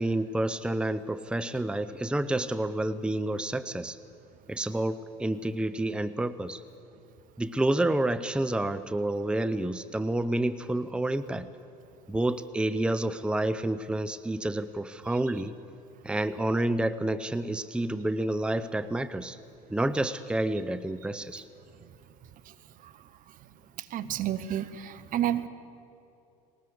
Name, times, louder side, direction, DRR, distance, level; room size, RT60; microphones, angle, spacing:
voice 1, 0.0-4.0 4.5-6.6 7.4-11.5 12.1-15.5 16.0-19.4 19.7-21.5, right 1 dB, 5° right, 13 dB, 0.7 m, -29 dB
voice 2, 23.8-25.5, right 11 dB, 50° right, 12 dB, 1.1 m, -31 dB
20.0 x 19.0 x 8.0 m, 2.7 s
hypercardioid pair, 70°, 18 cm